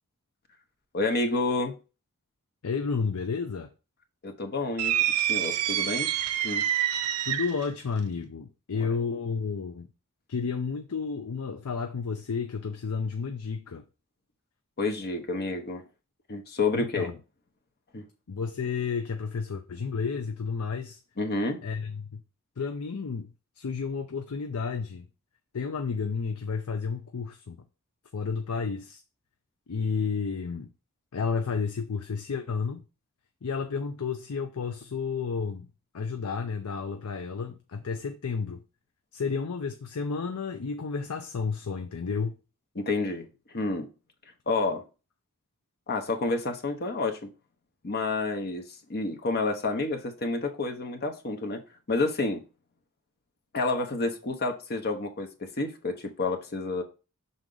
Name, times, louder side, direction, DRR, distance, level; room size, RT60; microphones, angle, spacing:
voice 1, 0.9-1.8 4.2-6.1 6.4-6.7 8.8-9.0 14.8-15.8 16.3-17.1 17.9-18.0 21.2-21.6 42.7-43.9 44.5-44.8 45.9-47.3 47.8-51.6 51.9-52.4 53.5-56.8, left 3 dB, 45° left, 0.9 m, -29 dB
voice 2, 2.6-3.7 7.3-9.9 10.3-13.8 16.7-17.1 18.3-21.0 21.6-22.2 22.6-25.1 25.5-27.6 28.1-29.0 29.7-30.7 31.1-32.8 33.4-35.7 35.9-38.6 39.1-42.4, left 5 dB, 75° left, 0.6 m, -31 dB
sound 1, 4.8-7.7, right 11 dB, 85° right, 0.5 m, -27 dB
6.2 x 3.9 x 3.8 m
head